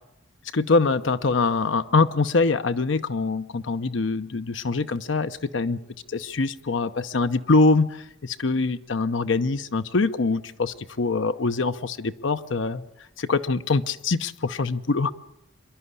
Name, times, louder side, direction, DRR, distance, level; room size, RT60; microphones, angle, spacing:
voice 1, 0.5-5.8 6.1-12.8 13.2-15.1, left 3 dB, 75° left, 10 dB, 0.7 m, -24 dB
25.5 x 11.5 x 9.6 m, 0.87 s
head